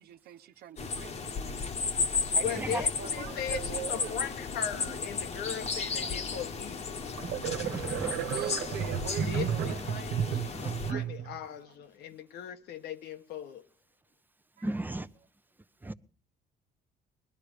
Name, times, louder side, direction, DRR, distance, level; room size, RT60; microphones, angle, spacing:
voice 1, 0.0-1.9 2.3-4.2 4.8-5.0 6.0-6.7 8.0-9.8 11.6-11.7 14.6-14.7, right 10 dB, 70° right, 1.1 m, -42 dB
sound 1, 0.8-10.9, left 5 dB, 40° left, 1.3 m, -34 dB
voice 2, 2.4-7.1 9.3-13.6, left 9 dB, 75° left, 1.4 m, -39 dB
sound 2, 6.5-6.6 7.2-11.4, right 8 dB, 85° right, 1.5 m, -33 dB
voice 3, 7.6-8.1 10.5-10.7 14.6-15.1 15.8-15.9, right 2 dB, 10° right, 0.8 m, -35 dB
20.5 x 12.5 x 5.1 m
cardioid pair, 110°, 17 cm